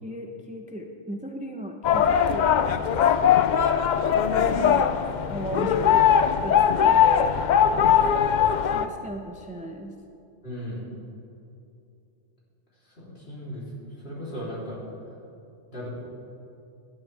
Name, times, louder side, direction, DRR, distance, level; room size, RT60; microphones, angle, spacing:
voice 1, 0.0-2.5 2.8-2.9 4.2-5.0 5.3-6.0 6.4-8.3 8.6-10.0, right 1 dB, 10° right, 3 dB, 0.5 m, -37 dB
sound 1, 1.8-8.9, left 8 dB, 80° left, 0.4 m, -20 dB
voice 2, 10.4-10.8 13.0-13.6 14.0-14.8 15.7-15.9, equal, 50° left, -7 dB, 3.7 m, -36 dB
17.0 x 11.5 x 3.4 m, 2.6 s
omnidirectional pair, 1.3 m